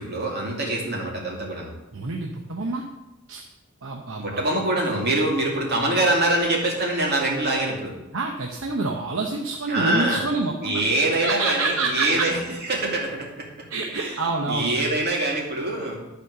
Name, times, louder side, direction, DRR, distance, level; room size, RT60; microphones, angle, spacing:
voice 1, 0.0-1.7 4.2-8.0 9.7-10.2 10.6-12.4 12.7-13.5 13.9-14.2 14.5-16.0, right 1 dB, 50° right, -2 dB, 2.5 m, -24 dB
voice 2, 1.9-2.8 3.3-3.4 3.8-4.5 8.1-10.9 11.2-12.3 13.7-14.8, right 3 dB, 70° right, 1 dB, 0.9 m, -27 dB
11.5 x 4.3 x 6.6 m, 1.0 s
head